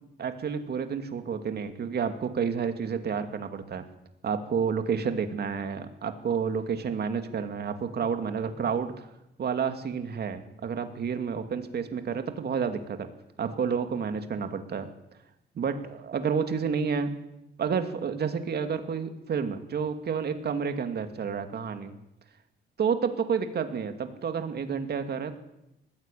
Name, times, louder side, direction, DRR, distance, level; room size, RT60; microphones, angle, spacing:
voice 1, 0.2-3.9 4.2-9.1 9.4-13.1 13.4-14.9 15.5-17.1 17.6-21.9 22.8-25.4, right 6 dB, 55° right, 7 dB, 2.6 m, -30 dB
19.5 x 15.5 x 9.2 m, 0.88 s
cardioid pair, 90°, 20 cm